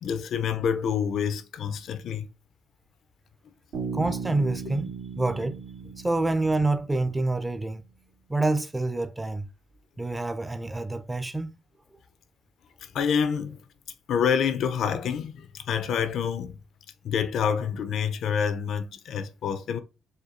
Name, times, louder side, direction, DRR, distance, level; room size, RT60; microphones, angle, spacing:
voice 1, 0.0-2.3 12.9-13.6 14.1-16.6 17.0-19.8, left 7 dB, 65° left, 0.4 m, -27 dB
Bass guitar, 3.7-7.4, right 5 dB, 80° right, 1.7 m, -37 dB
voice 2, 3.9-5.6 6.0-7.8 8.3-9.5 10.0-11.6, right 2 dB, 15° right, 0.5 m, -27 dB
4.2 x 2.3 x 2.5 m
supercardioid pair, 60°, 0 cm